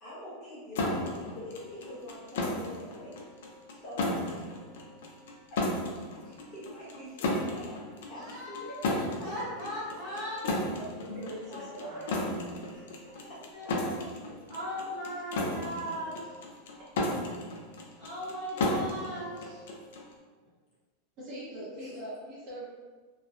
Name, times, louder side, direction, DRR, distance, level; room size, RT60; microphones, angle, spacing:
voice 1, 0.0-3.1 3.7-4.5 5.5-5.6 6.2-8.8 11.4-12.4 12.7-12.9 13.3-14.3 21.8-21.9, left 1 dB, 30° left, -9 dB, 1.0 m, -45 dB
sound 1, 0.8-20.1, left 2 dB, 70° left, 0.4 m, -34 dB
voice 2, 8.2-10.7 13.0-14.2 14.5-16.2 18.0-19.6, equal, 5° left, -13 dB, 0.8 m, -38 dB
voice 3, 11.1-12.1 21.2-22.7, right 1 dB, 35° right, -8 dB, 0.8 m, -42 dB
2.9 x 2.1 x 2.4 m, 1.4 s
supercardioid pair, 175°, 0 cm